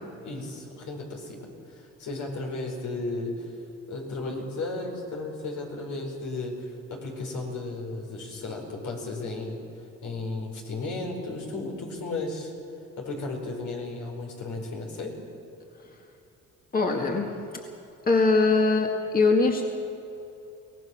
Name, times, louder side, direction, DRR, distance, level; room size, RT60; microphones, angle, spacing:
voice 1, 0.2-3.5 3.9-9.6 10.0-12.5 13.0-15.1, left 2 dB, 75° left, 1 dB, 4.8 m, -34 dB
voice 2, 16.7-17.3 18.1-19.6, left 3 dB, 30° left, 2 dB, 2.0 m, -22 dB
23.0 x 18.0 x 6.3 m, 2.9 s
cardioid pair, 90°, 30 cm